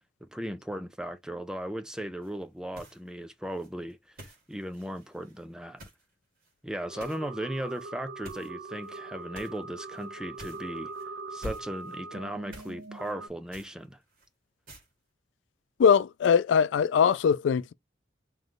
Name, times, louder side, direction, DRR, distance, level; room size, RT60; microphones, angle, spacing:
voice 1, 0.2-5.8 6.6-10.9 11.3-14.0, right 1 dB, 5° right, 0.4 m, -37 dB
sound 1, 2.2-2.4 2.7-3.2 3.5-6.0 6.4-6.5 7.0-7.2 7.6-7.8 8.2-9.0 9.3-9.6 9.9-10.1 10.4-11.0 11.4-12.0 12.5-13.1 13.5-14.3 14.7-14.9, equal, 50° right, 2.0 m, -47 dB
sound 2, 6.9-13.3, right 3 dB, 80° right, 0.5 m, -42 dB
voice 2, 15.8-17.7, left 7 dB, 85° left, 0.3 m, -21 dB
3.2 x 3.1 x 3.8 m
head